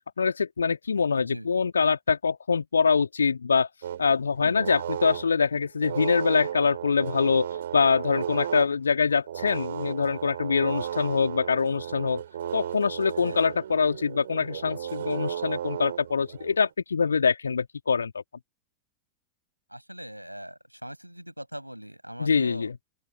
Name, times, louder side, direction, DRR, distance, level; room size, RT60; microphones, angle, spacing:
voice 1, 0.2-3.7 4.0-7.5 7.7-12.2 12.5-18.1 22.2-22.8, left 5 dB, 75° left, 2.5 m, -24 dB
voice 2, 1.2-1.5 4.4-4.7 13.2-13.4 19.7-22.7, equal, 90° right, 7.3 m, -41 dB
sound 1, 3.8-8.7 9.1-16.7, right 10 dB, 65° right, 6.1 m, -35 dB
open air
figure-of-eight pair, 90°, 0 cm